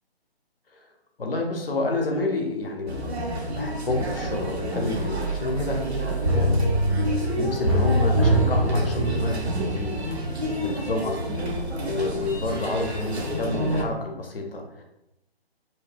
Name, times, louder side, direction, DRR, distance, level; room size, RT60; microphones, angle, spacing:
voice 1, 1.2-3.1 3.6-6.0 6.4-6.6 7.4-10.0 10.3-11.3 11.8-14.8, left 2 dB, 65° left, 2 dB, 0.6 m, -29 dB
sound 1, 2.9-13.8, right 1 dB, 85° right, 0.7 m, -29 dB
sound 2, 6.2-10.9 11.3-11.4, right 1 dB, 25° right, 0.4 m, -24 dB
2.7 x 2.0 x 3.2 m, 0.86 s
figure-of-eight pair, 140°, 32 cm